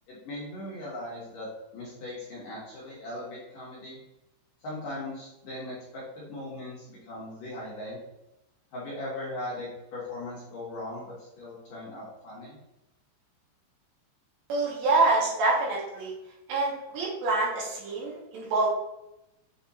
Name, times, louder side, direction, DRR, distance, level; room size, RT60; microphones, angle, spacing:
voice 1, 0.1-4.0 4.6-8.0 8.7-12.6, left 1 dB, 65° left, -7 dB, 2.2 m, -39 dB
voice 2, 14.5-16.1 16.5-18.7, right 3 dB, 70° right, -5 dB, 3.1 m, -26 dB
7.3 x 3.3 x 4.2 m, 0.91 s
omnidirectional pair, 5.7 m